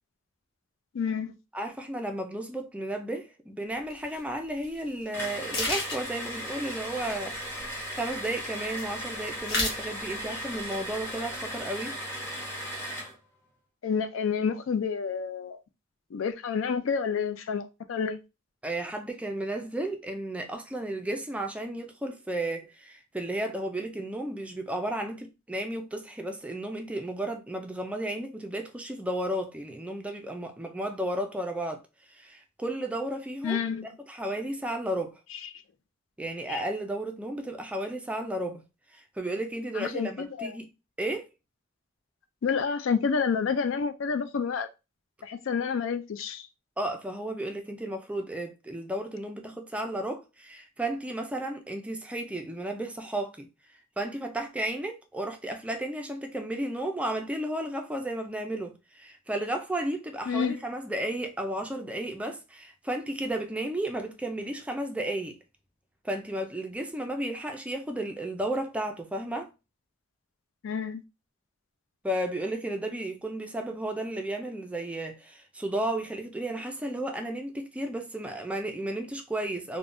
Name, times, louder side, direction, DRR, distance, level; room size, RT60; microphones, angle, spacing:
voice 1, 0.9-1.3 13.8-15.6 16.1-18.2 33.4-33.9 36.5-36.6 39.8-40.5 42.4-44.7 45.2-46.5 60.3-60.6 70.6-71.0, left 6 dB, 80° left, 0.4 m, -29 dB
voice 2, 1.5-12.0 18.6-31.8 32.1-33.6 34.1-35.2 36.2-38.6 38.9-40.7 41.0-41.3 46.8-53.5 54.0-65.4 66.0-69.5 72.0-79.8, right 1 dB, 5° right, 0.3 m, -33 dB
sound 1, 3.9-4.0 4.6-4.8 5.1-5.2 5.5-6.3 7.1-8.1 8.4-9.0 9.3-9.8 10.2-10.7 10.9-11.6, left 2 dB, 55° left, 1.1 m, -32 dB
sound 2, 5.1-13.2, equal, 15° left, 0.9 m, -37 dB
3.4 x 2.1 x 2.5 m
head